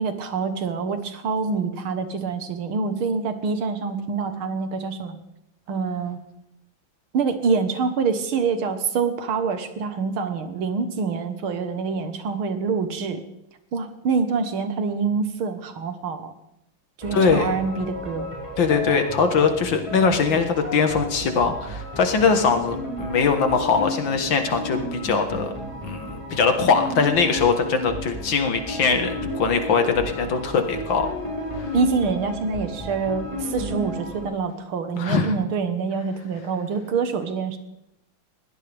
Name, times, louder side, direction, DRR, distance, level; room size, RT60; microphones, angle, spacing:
voice 1, 0.0-5.2 5.7-6.2 7.1-13.2 13.7-16.3 17.0-18.3 31.7-37.6, right 5 dB, 85° right, 8 dB, 2.2 m, -26 dB
sound 1, 17.0-34.2, left 1 dB, 15° right, 5.7 m, -33 dB
voice 2, 17.1-17.6 18.6-25.5 25.8-31.1 31.6-31.7 35.0-35.3, left 5 dB, 65° left, 6 dB, 2.2 m, -21 dB
21.0 x 17.0 x 3.5 m, 0.84 s
omnidirectional pair, 2.3 m